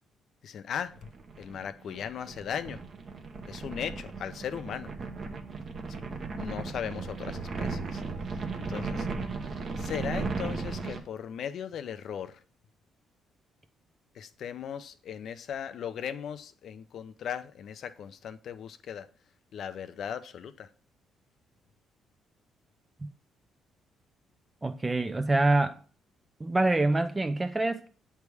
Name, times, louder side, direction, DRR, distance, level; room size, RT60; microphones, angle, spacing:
voice 1, 0.4-0.9 1.4-2.8 3.5-4.9 5.9-6.0 6.3-8.0 8.3-9.1 9.8-12.4 14.1-19.1 19.5-20.7, left 8 dB, 60° left, 0.5 m, -38 dB
sound 1, 1.0-11.0, right 4 dB, 40° right, 0.9 m, -36 dB
voice 2, 24.6-25.8 26.4-27.9, right 2 dB, 15° right, 0.4 m, -25 dB
8.1 x 3.4 x 4.7 m
cardioid pair, 120°, 0 cm